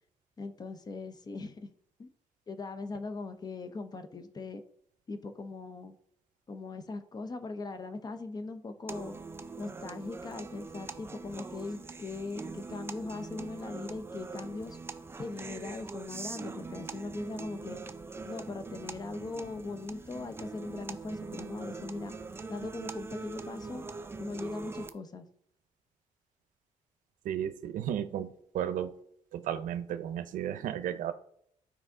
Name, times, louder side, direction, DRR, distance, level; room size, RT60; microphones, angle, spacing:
voice 1, 0.4-1.7 2.0-2.1 2.5-4.6 5.1-5.9 6.5-9.1 9.6-14.8 15.2-17.8 18.3-22.1 22.5-23.8 24.2-25.3, left 3 dB, 30° left, 9 dB, 0.7 m, -40 dB
sound 1, 8.9-24.9, right 4 dB, 20° right, 0.5 m, -43 dB
voice 2, 27.2-28.9 29.3-31.1, right 10 dB, 90° right, 11 dB, 0.6 m, -34 dB
12.5 x 4.8 x 3.7 m, 0.69 s
cardioid pair, 140°, 13 cm